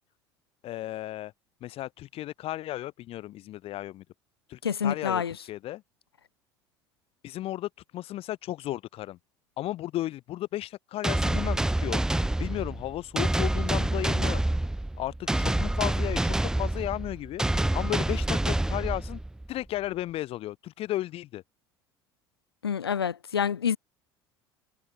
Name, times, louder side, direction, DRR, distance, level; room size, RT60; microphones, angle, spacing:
voice 1, 0.6-1.3 1.6-4.0 4.5-5.2 5.5-5.8 7.2-9.2 9.6-12.0 12.4-14.4 15.0-17.4 17.7-19.2 19.5-21.4, left 15 dB, 50° left, 1.1 m, -34 dB
voice 2, 4.6-5.3 22.6-23.8, left 7 dB, 85° left, 1.5 m, -27 dB
sound 1, 11.0-19.5, right 1 dB, 5° right, 0.4 m, -27 dB
hypercardioid pair, 65°, 13 cm